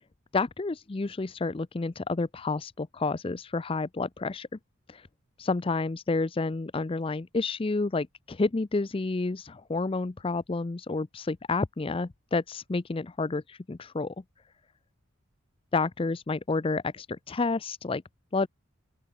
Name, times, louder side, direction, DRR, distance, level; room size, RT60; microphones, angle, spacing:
voice 1, 0.3-4.5 4.9-5.1 5.4-14.1 15.7-18.0 18.3-18.5, left 3 dB, 25° left, 0.4 m, -30 dB
open air
head